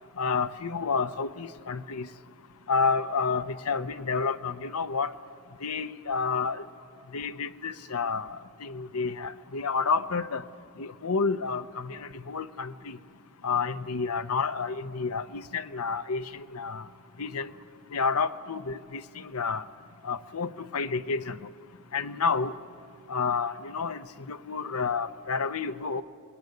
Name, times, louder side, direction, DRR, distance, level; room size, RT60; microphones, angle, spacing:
voice 1, 0.2-2.1 2.7-5.1 5.6-6.6 7.1-8.3 8.6-10.4 10.8-13.0 13.4-16.8 17.2-17.5 17.9-19.6 20.0-21.4 21.9-22.5 23.1-24.0 24.3-26.0, left 5 dB, 80° left, 11 dB, 0.8 m, -30 dB
27.5 x 21.5 x 9.4 m, 2.6 s
head